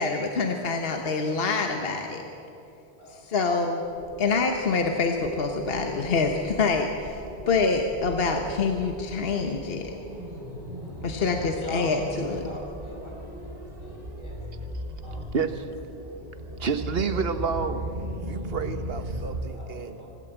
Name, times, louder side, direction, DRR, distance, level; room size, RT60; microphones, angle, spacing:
voice 1, 0.0-2.2 3.1-3.8 4.2-7.2 7.5-9.9 11.0-12.4, left 4 dB, 65° left, 4 dB, 1.3 m, -26 dB
sound 1, 3.8-12.5, equal, 85° left, 3.0 m, -42 dB
sound 2, 7.0-19.4, equal, 40° right, 3.2 m, -37 dB
voice 2, 10.7-14.4 15.0-15.4 19.5-20.1, equal, 45° left, -4 dB, 5.8 m, -41 dB
voice 3, 15.3-15.6 16.6-17.8 18.3-20.0, right 5 dB, 65° right, 9 dB, 1.3 m, -29 dB
25.5 x 12.5 x 8.1 m, 2.8 s
omnidirectional pair, 1.1 m